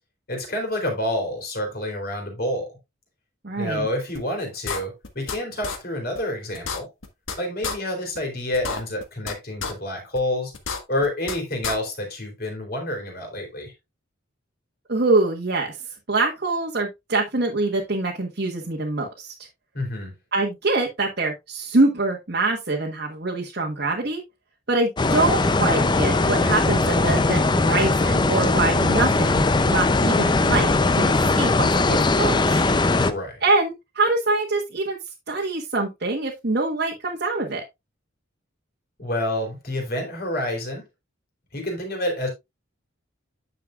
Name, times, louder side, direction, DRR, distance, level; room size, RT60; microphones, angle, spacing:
voice 1, 0.3-2.7 3.6-6.9 7.4-10.5 10.9-13.7 19.7-20.2 32.9-33.4 39.0-40.8 41.5-42.3, left 1 dB, 50° left, 3.2 m, -28 dB
voice 2, 3.4-3.9 14.9-15.8 16.1-19.3 20.3-24.2 24.7-32.6 33.4-35.0 35.3-37.6, right 2 dB, 50° right, 1.3 m, -24 dB
sound 1, 4.1-4.2 4.6-5.4 5.6-5.8 6.1-6.2 6.5-7.3 7.6-7.7 8.1-8.2 8.5-9.3 9.6-9.7 10.1-10.2 10.5-11.3 11.6-11.7, left 5 dB, 80° left, 1.4 m, -29 dB
sound 2, 25.0-33.1, left 3 dB, 20° left, 0.5 m, -20 dB
9.8 x 6.6 x 2.4 m
head